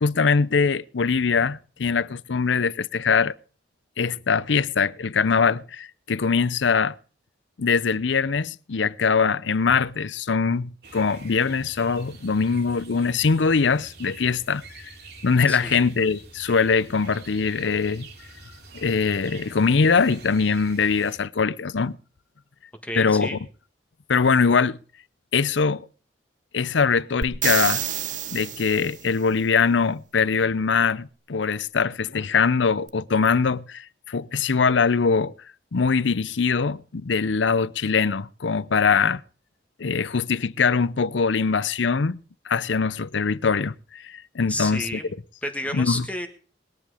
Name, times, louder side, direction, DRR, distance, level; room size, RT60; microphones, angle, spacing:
voice 1, 0.0-3.3 4.0-6.9 7.6-14.9 15.2-18.1 18.7-22.0 23.0-23.4 24.1-24.8 25.3-25.9 26.5-27.8 28.3-35.3 35.7-39.2 39.8-42.2 42.5-45.0 45.7-46.1, left 5 dB, 75° left, 0.6 m, -22 dB
sound 1, 10.8-21.2, right 3 dB, 60° right, 2.8 m, -46 dB
voice 2, 15.5-15.8 22.8-23.4 44.5-45.0 45.4-46.3, left 1 dB, 10° left, 1.5 m, -31 dB
sound 2, 27.2-29.1 32.9-33.0, right 10 dB, 40° right, 0.8 m, -28 dB
20.5 x 10.5 x 5.0 m
head